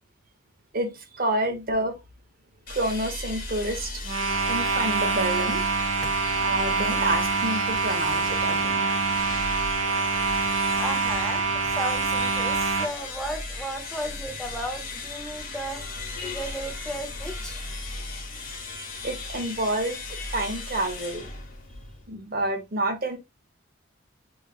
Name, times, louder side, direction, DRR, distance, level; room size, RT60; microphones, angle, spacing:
voice 1, 0.7-2.0 2.7-3.9 4.5-5.6 6.4-8.8 19.0-20.0 20.3-21.2 22.1-23.2, right 1 dB, 45° right, 0.8 m, -28 dB
sound 1, 2.7-22.1, left 3 dB, 45° left, 1.2 m, -36 dB
sound 2, 4.0-12.9, right 4 dB, 90° right, 0.7 m, -25 dB
voice 2, 10.8-11.4 11.7-15.8 16.2-17.6, right 1 dB, 5° left, 0.6 m, -34 dB
6.4 x 2.3 x 2.3 m
head